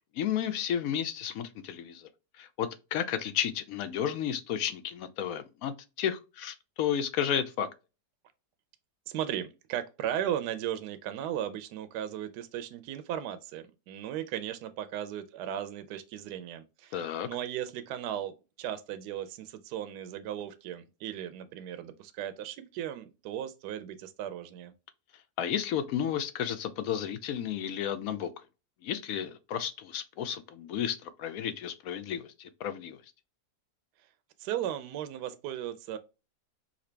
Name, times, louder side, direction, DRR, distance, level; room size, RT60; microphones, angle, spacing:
voice 1, 0.2-2.1 2.4-7.7 16.9-17.3 25.4-28.3 28.8-33.0, left 9 dB, 70° left, 0.9 m, -32 dB
voice 2, 9.1-18.3 18.6-24.7 34.4-36.0, right 11 dB, 75° right, 1.1 m, -36 dB
4.9 x 2.8 x 3.2 m
omnidirectional pair, 1.8 m